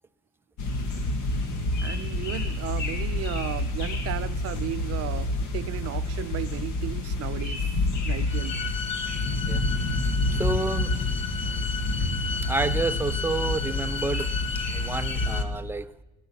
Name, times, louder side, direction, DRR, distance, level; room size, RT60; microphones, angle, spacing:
sound 1, 0.6-15.4, left 2 dB, 80° left, 1.9 m, -28 dB
voice 1, 1.8-7.6 8.0-8.6, right 13 dB, 55° right, 0.6 m, -35 dB
sound 2, 8.3-15.4, left 5 dB, 20° left, 0.8 m, -34 dB
voice 2, 10.3-10.9 12.4-14.3 14.7-15.9, right 3 dB, 10° right, 0.4 m, -29 dB
16.5 x 11.0 x 7.1 m
cardioid pair, 140°, 29 cm